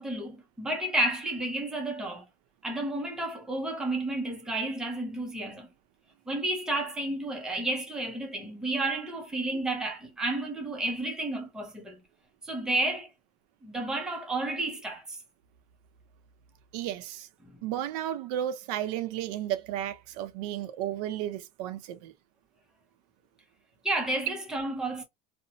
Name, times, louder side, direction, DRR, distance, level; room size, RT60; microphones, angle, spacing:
voice 1, 0.0-2.3 2.6-5.7 6.3-12.0 12.4-13.1 13.6-15.2 23.8-25.0, right 2 dB, 5° right, 0.5 m, -31 dB
voice 2, 16.7-17.3 17.6-22.1, right 11 dB, 75° right, 0.5 m, -33 dB
2.6 x 2.0 x 2.7 m
cardioid pair, 165°, 20 cm